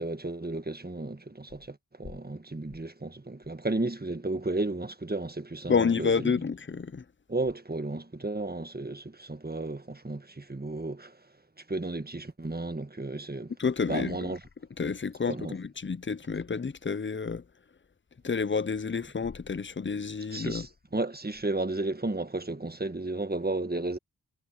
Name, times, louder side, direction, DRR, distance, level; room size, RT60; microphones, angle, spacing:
voice 1, 0.0-6.3 7.3-11.2 11.7-13.5 13.9-14.4 15.3-15.6 20.3-24.0, right 2 dB, 25° right, 1.5 m, -33 dB
voice 2, 5.7-7.0 13.6-14.3 14.8-17.4 18.2-20.7, left 5 dB, 30° left, 0.6 m, -29 dB
cardioid pair, 45°, 38 cm